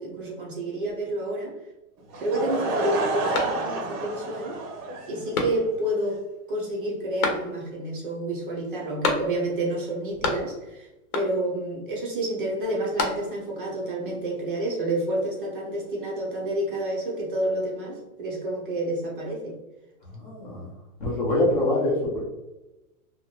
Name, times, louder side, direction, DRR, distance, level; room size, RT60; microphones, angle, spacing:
voice 1, 0.0-1.5 2.2-4.6 5.1-6.2 6.5-10.9 11.1-19.6, right 1 dB, 35° right, -3 dB, 0.5 m, -29 dB
Laughter / Crowd, 2.1-5.6, right 2 dB, 80° right, 0.9 m, -30 dB
sound 1, 3.3-4.0 4.4-4.5 5.3-6.0 7.2-7.8 9.0-9.6 9.9-10.7 11.1-11.6 12.6-13.6, left 3 dB, 70° left, 0.8 m, -30 dB
voice 2, 20.1-20.7 21.0-22.2, left 1 dB, 35° left, -4 dB, 0.5 m, -24 dB
2.8 x 2.3 x 2.8 m, 1.0 s
supercardioid pair, 175°, 46 cm